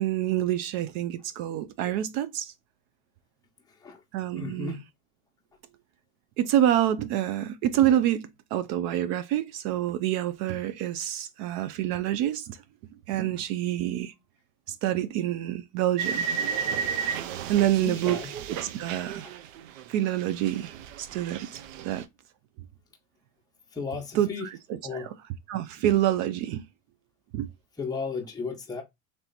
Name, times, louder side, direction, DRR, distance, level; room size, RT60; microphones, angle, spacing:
voice 1, 0.0-2.5 4.1-4.8 6.4-12.6 13.1-14.1 14.7-16.3 17.5-18.2 18.5-19.3 19.9-22.0 24.1-25.1 25.5-26.7 27.3-27.5, right 12 dB, 45° right, 0.4 m, -27 dB
voice 2, 4.3-4.8 17.8-18.3 23.7-24.5 24.8-25.1 27.8-28.8, left 4 dB, 10° left, 0.9 m, -34 dB
sound 1, 16.0-19.9 20.2-22.0, right 7 dB, 75° right, 0.7 m, -33 dB
3.4 x 2.8 x 3.9 m
supercardioid pair, 120°, 41 cm